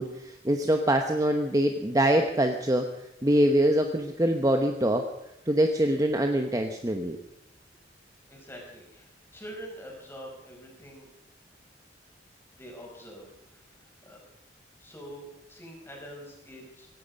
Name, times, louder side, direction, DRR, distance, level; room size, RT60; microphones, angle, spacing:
voice 1, 0.0-2.9 3.2-5.1 5.5-7.2, right 1 dB, 20° right, 5 dB, 1.0 m, -24 dB
voice 2, 8.3-9.1 9.3-11.1 12.6-13.3 14.0-14.2 14.8-16.9, equal, 15° left, -1 dB, 5.4 m, -44 dB
17.0 x 15.5 x 5.3 m, 0.82 s
head